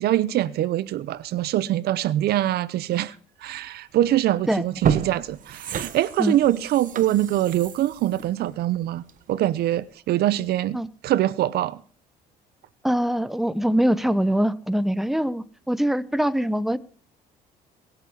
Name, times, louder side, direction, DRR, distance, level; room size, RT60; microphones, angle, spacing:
voice 1, 0.0-3.2 3.4-11.8, right 13 dB, 70° right, 0.8 m, -24 dB
sound 1, 4.0-4.2 4.6-9.4 9.8-9.9, right 8 dB, 50° right, 1.3 m, -30 dB
voice 2, 12.8-16.8, equal, ahead, 1.0 m, -23 dB
22.5 x 8.0 x 7.3 m
cardioid pair, 110°, 17 cm